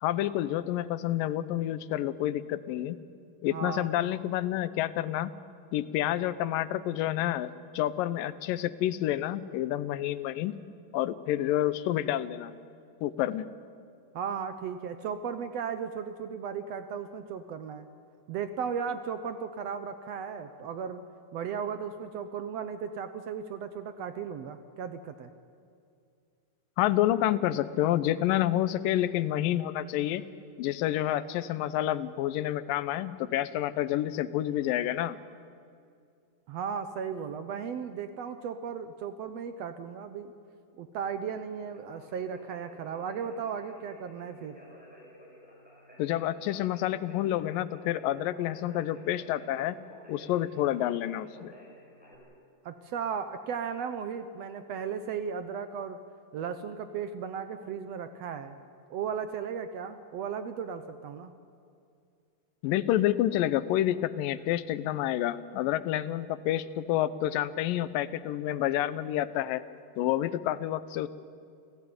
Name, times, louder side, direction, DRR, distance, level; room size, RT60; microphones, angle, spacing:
voice 1, 0.0-3.0 3.4-5.3 5.7-10.6 10.9-12.5 13.0-13.5 26.8-30.2 30.6-35.2 46.0-49.8 50.1-51.5 62.6-69.6 70.0-71.1, left 13 dB, 85° left, 15 dB, 2.5 m, -29 dB
voice 2, 3.5-3.9 14.1-17.9 18.3-21.0 21.3-25.3 36.5-40.3 40.8-44.6 52.6-56.0 56.3-58.5 58.9-61.3, right 7 dB, 75° right, 10 dB, 1.6 m, -36 dB
Conversation, 41.6-52.1, equal, ahead, 5.8 m, -53 dB
29.5 x 15.5 x 9.6 m, 2.4 s
omnidirectional pair, 3.9 m